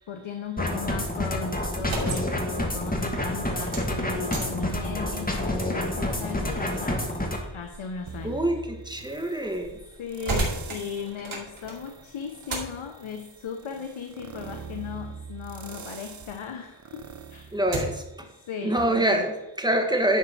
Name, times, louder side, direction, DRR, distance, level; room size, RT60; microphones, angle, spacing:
voice 1, 0.1-7.2 7.5-8.4 9.0-9.1 10.0-17.6 18.3-19.2, left 6 dB, 70° left, 5 dB, 1.0 m, -37 dB
sound 1, 0.6-7.4, left 1 dB, 15° left, 1.8 m, -28 dB
sound 2, 1.8-16.4 16.8-18.2, right 2 dB, 70° right, 2.6 m, -38 dB
sound 3, 8.1-9.5 10.1-11.2 11.6-18.3 18.8-18.9, right 6 dB, 35° right, 0.9 m, -43 dB
voice 2, 8.2-9.8 17.5-18.3 18.6-20.2, right 1 dB, 10° right, 3 dB, 1.5 m, -25 dB
10.5 x 4.5 x 5.9 m, 0.97 s
cardioid pair, 70°, 49 cm